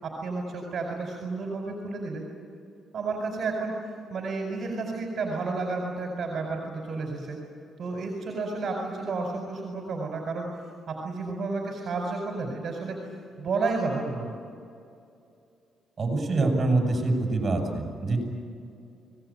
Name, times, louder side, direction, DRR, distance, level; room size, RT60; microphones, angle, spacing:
voice 1, 0.0-2.2 2.9-3.7 4.1-7.4 7.8-10.5 10.9-13.0 13.4-14.3, right 3 dB, 55° right, 1 dB, 5.0 m, -31 dB
voice 2, 16.0-18.2, right 2 dB, 40° right, 2 dB, 7.9 m, -25 dB
25.0 x 19.5 x 9.1 m, 2.5 s
cardioid pair, 90°, 0 cm